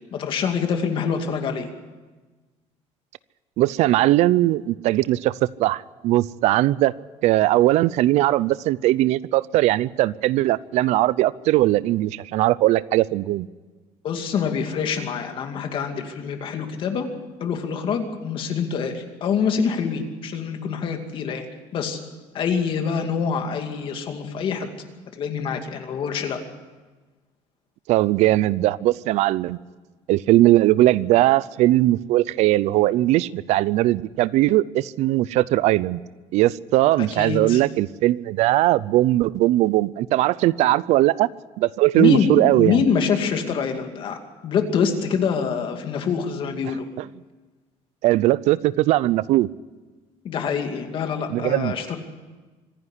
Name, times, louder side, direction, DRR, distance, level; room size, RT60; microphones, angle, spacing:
voice 1, 0.1-1.7 14.0-17.1 17.4-22.0 22.3-24.7 25.1-26.4 37.0-37.6 41.9-46.9 50.2-52.0, left 6 dB, 45° left, 5 dB, 2.4 m, -25 dB
voice 2, 3.6-6.9 7.2-13.5 27.9-29.6 30.1-36.0 36.3-41.3 41.6-42.8 48.0-49.5 51.3-51.7, right 16 dB, 75° right, 20 dB, 0.6 m, -19 dB
25.0 x 11.0 x 9.8 m, 1.3 s
cardioid pair, 160°, 12 cm